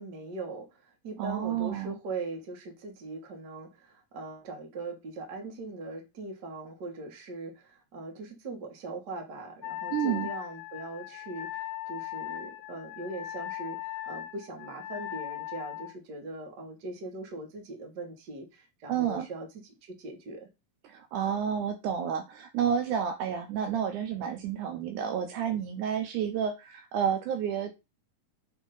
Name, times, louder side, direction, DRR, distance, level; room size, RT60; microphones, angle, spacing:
voice 1, 0.0-19.5 19.8-20.5, right 2 dB, 40° right, 1.7 m, -40 dB
voice 2, 1.2-2.0 9.9-10.3 18.9-19.3 20.8-27.7, right 8 dB, 75° right, 2.1 m, -30 dB
Wind instrument woodwind instrument, 9.6-16.0, left 14 dB, 80° left, 2.0 m, -39 dB
6.3 x 3.6 x 5.4 m
omnidirectional pair, 3.8 m